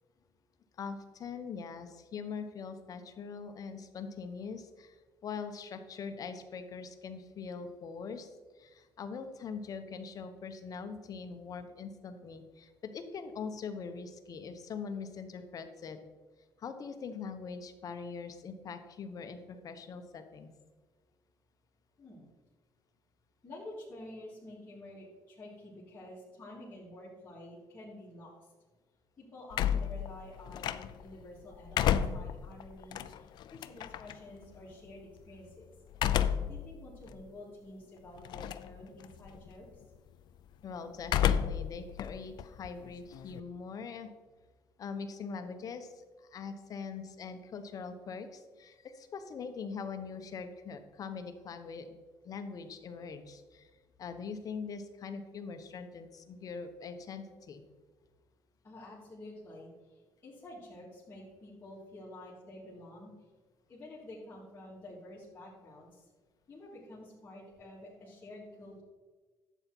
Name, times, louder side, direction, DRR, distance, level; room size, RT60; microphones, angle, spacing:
voice 1, 0.8-8.3 8.6-16.0 16.6-20.5 40.6-44.1 44.8-52.0 52.2-53.7 54.0-57.6, left 5 dB, 50° left, 8 dB, 1.2 m, -42 dB
voice 2, 23.4-28.3 29.2-35.7 36.5-39.7 58.6-63.1 63.7-66.1 66.5-68.8, left 1 dB, 25° left, -10 dB, 3.5 m, -49 dB
sound 1, 29.5-31.1 31.5-34.1 35.9-36.6 37.1-37.2 38.3-38.7 39.0-39.5 41.0-41.7 42.0-43.4, left 9 dB, 65° left, 0.5 m, -30 dB
11.0 x 8.2 x 4.6 m, 1.4 s
cardioid pair, 110°, 8 cm